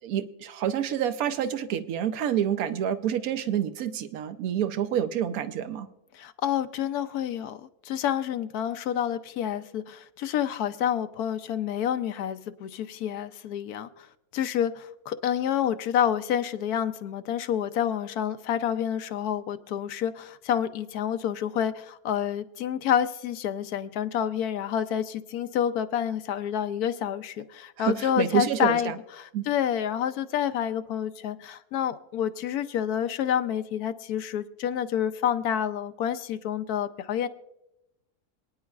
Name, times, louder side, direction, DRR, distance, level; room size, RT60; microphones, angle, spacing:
voice 1, 0.0-5.9 27.8-29.0 29.3-29.4, right 10 dB, 75° right, 1.1 m, -28 dB
voice 2, 6.1-14.1 14.3-37.3, left 9 dB, 85° left, 1.2 m, -28 dB
26.5 x 9.6 x 2.4 m
omnidirectional pair, 1.6 m